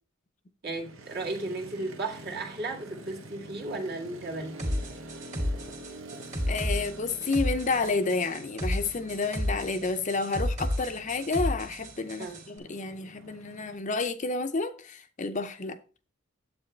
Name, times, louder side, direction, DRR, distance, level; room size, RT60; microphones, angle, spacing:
voice 1, 0.6-4.6 12.2-12.4, right 2 dB, 50° right, 1.9 m, -35 dB
Motorcycle, 0.7-13.8, right 1 dB, 75° right, 1.3 m, -47 dB
sound 1, 4.6-12.5, left 1 dB, 35° right, 2.1 m, -32 dB
voice 2, 6.5-15.8, left 3 dB, 35° left, 0.6 m, -30 dB
9.5 x 8.0 x 3.3 m
head